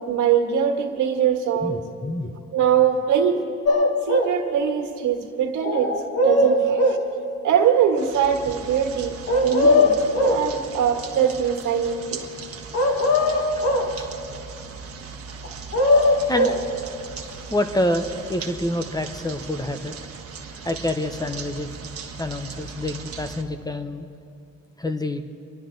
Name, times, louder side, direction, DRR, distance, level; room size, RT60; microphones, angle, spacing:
voice 1, 0.0-1.9 2.5-3.5 4.1-7.0 7.4-12.2, right 8 dB, 75° right, 3 dB, 1.7 m, -22 dB
voice 2, 1.6-2.4 13.6-13.7 13.9-14.1 16.3-16.5 17.5-20.0 20.6-21.8 22.2-24.1 24.8-25.2, left 1 dB, 15° left, 8 dB, 0.9 m, -27 dB
sound 1, 3.6-4.4 5.6-7.1 9.3-10.5 12.7-13.9 15.4-16.6, left 2 dB, 55° left, 1.7 m, -19 dB
sound 2, 8.0-23.4, right 5 dB, 50° right, 1.3 m, -38 dB
25.5 x 11.5 x 3.9 m, 2.5 s
cardioid pair, 90°, 30 cm